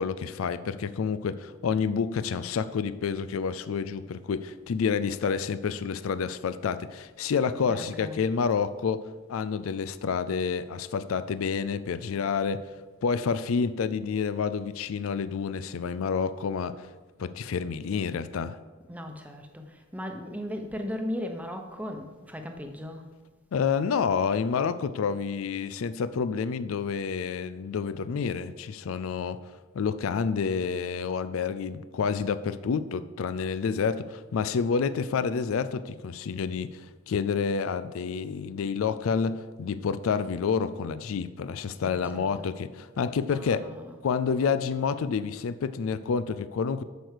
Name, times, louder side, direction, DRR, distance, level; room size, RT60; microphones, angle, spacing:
voice 1, 0.0-12.7 13.0-16.9 17.2-18.6 23.5-29.4 29.7-43.6 44.0-46.8, left 6 dB, 80° left, 0.4 m, -29 dB
voice 2, 7.7-8.2 18.9-23.1 41.7-42.5 43.3-44.0, left 1 dB, 5° right, 0.9 m, -37 dB
8.0 x 6.2 x 6.5 m
head